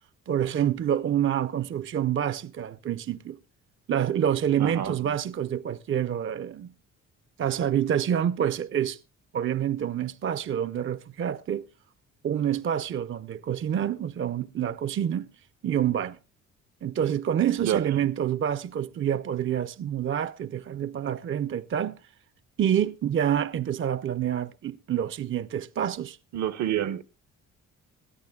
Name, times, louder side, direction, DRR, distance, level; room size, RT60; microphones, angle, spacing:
voice 1, 0.3-3.4 3.9-6.7 7.4-9.0 9.3-11.7 12.2-15.3 15.6-16.2 16.8-22.0 22.6-26.2, right 9 dB, 45° right, 0.6 m, -27 dB
voice 2, 4.6-4.9 17.6-17.8 26.3-27.0, right 11 dB, 70° right, 0.9 m, -27 dB
21.0 x 13.5 x 2.3 m
cardioid pair, 90°, 30 cm